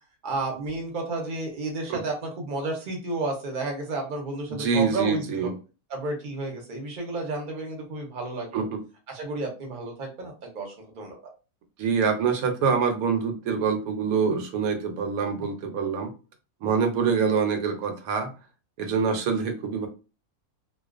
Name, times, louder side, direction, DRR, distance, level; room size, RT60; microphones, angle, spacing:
voice 1, 0.2-5.5 5.9-8.6 9.1-11.2, right 2 dB, 45° right, 1 dB, 0.7 m, -32 dB
voice 2, 4.5-5.5 8.5-8.8 11.8-16.1 16.6-18.3 18.8-19.9, right 6 dB, 80° right, 6 dB, 1.0 m, -25 dB
2.3 x 2.3 x 2.4 m, 0.32 s
omnidirectional pair, 1.5 m